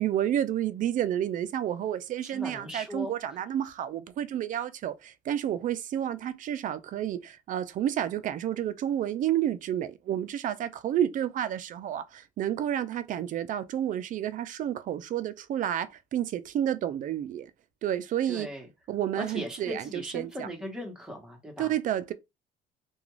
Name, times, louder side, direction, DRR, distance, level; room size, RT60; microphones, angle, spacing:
voice 1, 0.0-17.5 17.8-18.5 18.9-20.5 21.6-22.1, right 11 dB, 50° right, 0.4 m, -30 dB
voice 2, 2.2-3.4 18.3-18.7 19.2-21.7, equal, 5° right, 1.1 m, -38 dB
2.4 x 2.3 x 3.0 m
cardioid pair, 110°, 17 cm